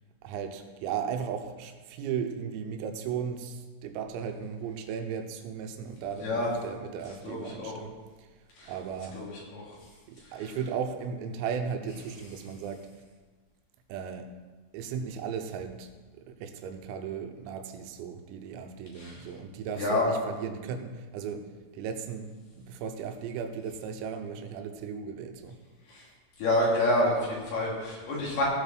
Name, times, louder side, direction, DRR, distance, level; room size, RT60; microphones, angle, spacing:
voice 1, 0.2-7.9 8.7-9.2 10.1-12.9 13.9-14.3 14.7-15.9 16.2-21.5 21.7-25.6, right 7 dB, 90° right, 6 dB, 3.6 m, -36 dB
voice 2, 7.2-7.7 8.6-8.7 9.1-9.7 10.3-10.4 19.0-19.2 19.8-20.1 25.9-26.1 26.4-28.4, left 1 dB, 55° left, -4 dB, 4.1 m, -28 dB
16.5 x 5.7 x 6.1 m, 1.3 s
omnidirectional pair, 5.9 m